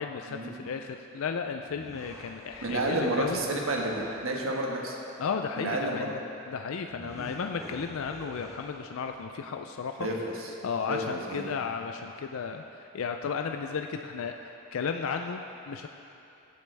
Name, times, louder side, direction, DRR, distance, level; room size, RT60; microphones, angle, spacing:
voice 1, 0.0-3.4 5.2-6.2 6.5-10.1 10.6-15.9, left 5 dB, 75° left, 5 dB, 0.4 m, -34 dB
sound 1, 1.7-4.3 6.9-9.2, right 1 dB, 15° right, 1.1 m, -46 dB
voice 2, 2.6-5.0 5.6-6.2 10.0-10.5 10.9-11.6, right 1 dB, 75° right, 0 dB, 1.4 m, -30 dB
15.5 x 8.4 x 3.4 m, 2.8 s
head